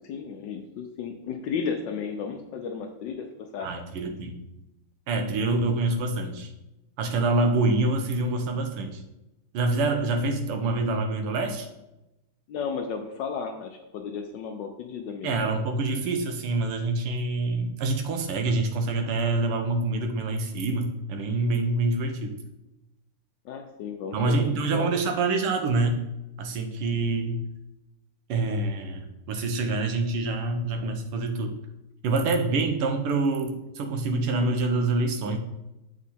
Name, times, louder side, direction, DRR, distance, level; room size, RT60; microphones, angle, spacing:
voice 1, 0.0-3.3 3.5-3.7 12.5-15.3 23.4-24.9, left 6 dB, 75° left, 4 dB, 1.1 m, -34 dB
voice 2, 3.6-4.4 5.1-6.5 7.0-9.0 9.5-11.7 15.2-22.3 24.1-26.0 26.4-27.4 28.3-31.5 32.0-35.4, right 3 dB, 85° right, 5 dB, 1.8 m, -26 dB
7.4 x 3.7 x 4.2 m, 0.93 s
omnidirectional pair, 2.4 m